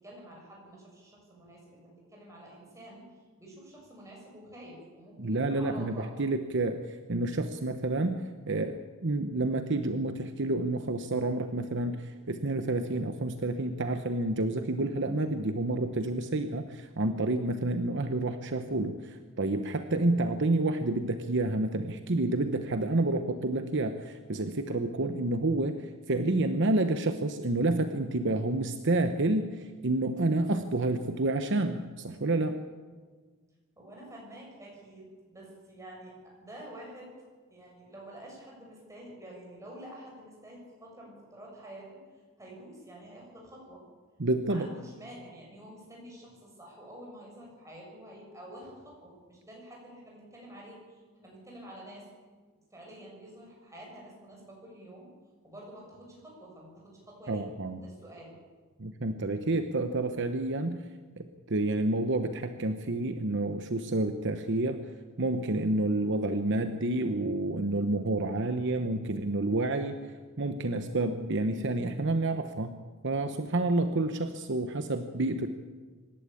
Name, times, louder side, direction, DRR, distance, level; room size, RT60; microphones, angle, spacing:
voice 1, 0.0-3.1 3.4-6.1 33.8-37.1 37.5-42.0 42.4-43.8 44.5-52.1 52.7-55.1 55.4-57.4 57.8-58.4, right 1 dB, 15° right, -3 dB, 7.1 m, -48 dB
voice 2, 5.2-32.6 44.2-44.7 57.3-57.8 58.8-60.9 61.2-64.9 65.2-70.1 70.4-72.8 73.0-75.5, right 2 dB, 55° right, 8 dB, 0.9 m, -29 dB
25.5 x 12.0 x 8.6 m, 1.4 s
head